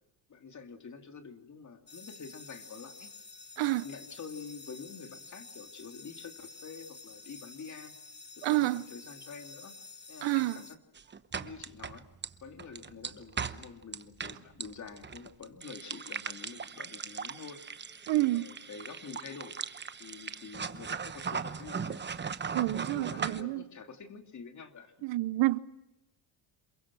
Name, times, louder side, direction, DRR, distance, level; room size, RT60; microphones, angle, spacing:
voice 1, 0.3-3.1 3.6-8.0 8.4-9.8 10.1-10.8 11.4-12.1 12.4-17.6 18.1-19.6 20.0-22.1 22.8-24.9, left 5 dB, 40° left, 2.7 m, -47 dB
sound 1, 1.9-10.8, left 3 dB, 25° left, 1.3 m, -50 dB
voice 2, 8.4-8.8 10.2-10.6 18.1-18.4 22.5-23.6 25.0-25.6, right 18 dB, 70° right, 0.8 m, -28 dB
sound 2, 11.0-23.4, right 6 dB, 25° right, 1.0 m, -38 dB
27.5 x 22.5 x 6.1 m
cardioid pair, 115°, 46 cm